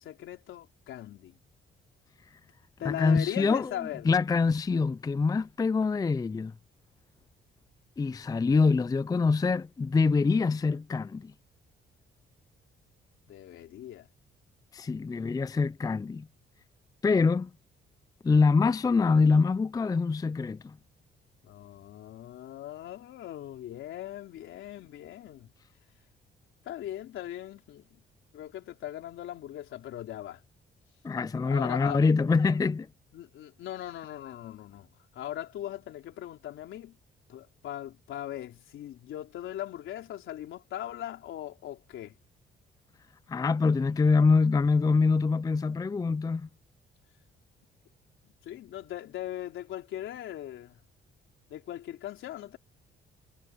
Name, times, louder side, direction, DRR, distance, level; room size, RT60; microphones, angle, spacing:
voice 1, 0.0-1.3 2.8-4.1 13.3-14.1 21.4-25.5 26.6-28.0 28.3-30.4 31.4-32.0 33.1-34.9 35.1-37.0 37.3-42.1 48.4-50.8 51.5-52.6, left 12 dB, 80° left, 3.8 m, -39 dB
voice 2, 2.8-3.7 4.1-6.5 8.0-11.3 14.7-16.3 17.0-17.5 18.2-20.8 31.0-32.9 43.3-46.5, left 4 dB, 20° left, 0.4 m, -25 dB
cardioid pair, 90°, 20 cm